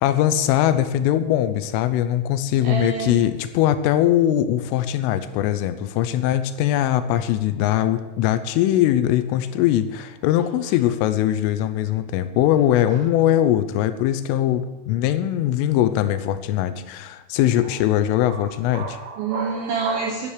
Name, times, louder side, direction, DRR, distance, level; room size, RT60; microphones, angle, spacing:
voice 1, 0.0-19.0, left 12 dB, 90° left, 11 dB, 3.4 m, -21 dB
voice 2, 2.6-3.2 12.9-13.0 18.3-18.5 18.7-20.3, right 5 dB, 75° right, 3 dB, 2.2 m, -27 dB
12.5 x 10.0 x 6.6 m, 1.1 s
omnidirectional pair, 5.7 m